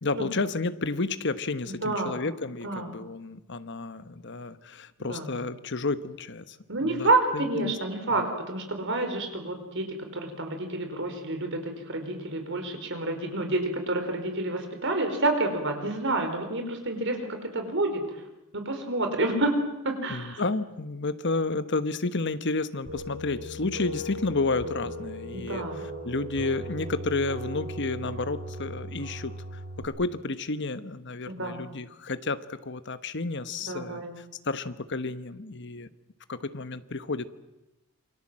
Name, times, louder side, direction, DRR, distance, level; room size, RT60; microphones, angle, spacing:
voice 1, 0.0-6.6 6.8-7.7 20.1-25.6 26.0-29.3 29.8-35.9 36.3-37.3, left 3 dB, 55° left, 12 dB, 1.2 m, -31 dB
voice 2, 1.8-2.2 2.6-2.9 5.0-5.3 6.7-18.1 18.5-19.5 19.8-20.4 25.3-25.8 31.3-31.7 33.7-34.1, right 2 dB, 60° right, 5 dB, 4.9 m, -29 dB
sound 1, 22.9-29.8, equal, 85° right, 7.3 m, -38 dB
28.0 x 24.0 x 7.6 m, 0.94 s
head